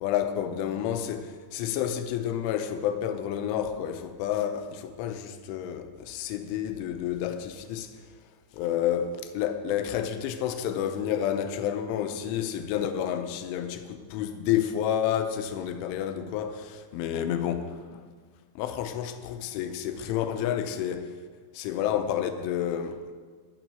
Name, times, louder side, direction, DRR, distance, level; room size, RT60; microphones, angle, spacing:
voice 1, 0.0-7.9 8.5-18.0 18.6-21.1 21.5-23.0, left 10 dB, 80° left, 3.1 m, -30 dB
11.5 x 9.1 x 7.7 m
omnidirectional pair, 5.8 m